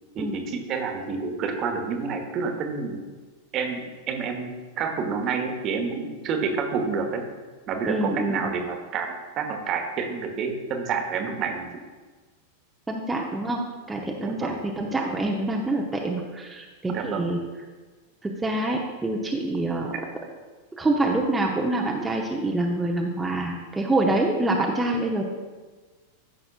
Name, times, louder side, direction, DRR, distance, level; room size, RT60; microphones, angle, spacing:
voice 1, 0.1-3.0 3.5-4.5 4.8-7.2 7.7-11.7 14.2-14.6 16.9-17.3, right 5 dB, 35° right, 4 dB, 1.2 m, -29 dB
voice 2, 7.8-8.5 12.9-13.6 13.9-17.4 18.2-19.9 20.8-25.2, right 2 dB, 10° right, 0 dB, 0.8 m, -26 dB
14.0 x 6.4 x 2.4 m, 1.3 s
figure-of-eight pair, 90°, 0 cm